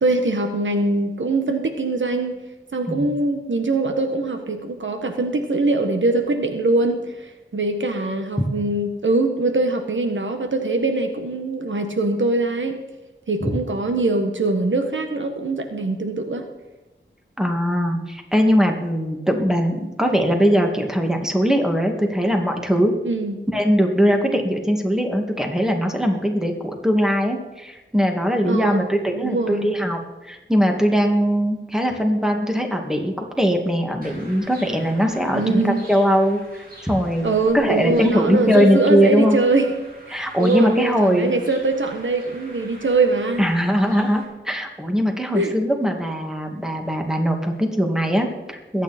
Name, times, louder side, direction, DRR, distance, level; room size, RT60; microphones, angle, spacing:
voice 1, 0.0-2.4 2.7-12.8 13.3-16.5 23.0-23.4 28.4-29.7 35.3-35.8 37.2-39.7 40.1-43.4 45.3-45.5, right 2 dB, 75° right, 6 dB, 1.5 m, -22 dB
voice 2, 17.4-22.9 23.5-36.4 36.8-37.3 37.5-39.4 40.1-41.3 43.4-48.8, equal, 5° right, 3 dB, 2.2 m, -20 dB
sound 1, 34.0-44.2, right 1 dB, 45° right, 4.1 m, -44 dB
22.0 x 9.2 x 4.4 m, 1.1 s
wide cardioid pair, 65°, 20 cm